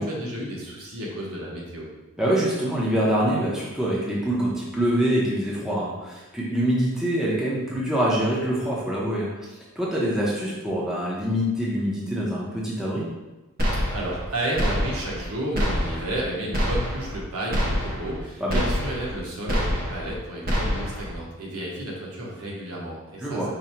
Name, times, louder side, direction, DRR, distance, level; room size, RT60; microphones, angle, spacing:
voice 1, 0.0-1.9 13.7-23.5, right 1 dB, 80° right, -3 dB, 1.1 m, -32 dB
voice 2, 2.2-13.0 18.4-18.6 23.2-23.5, equal, ahead, -6 dB, 0.7 m, -25 dB
sound 1, 13.6-14.3 14.6-15.3 15.6-16.2 16.5-17.2 17.5-18.2 18.5-19.2 19.5-20.2 20.5-21.2, equal, 40° right, 0.8 m, -26 dB
5.1 x 2.2 x 4.3 m, 1.1 s
head